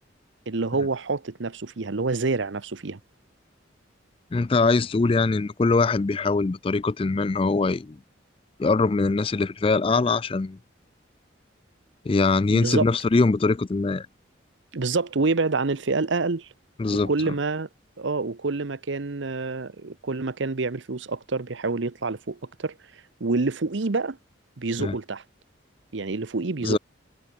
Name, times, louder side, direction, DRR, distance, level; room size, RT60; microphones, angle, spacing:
voice 1, 0.5-3.0 12.5-12.8 14.7-16.5 16.9-17.7 18.0-22.7 23.2-24.2 24.6-25.2 25.9-26.8, right 3 dB, 70° right, 0.9 m, -27 dB
voice 2, 4.3-8.0 8.6-10.6 12.1-14.1 16.8-17.1 24.8-25.0 26.6-26.8, left 3 dB, 30° left, 0.4 m, -22 dB
head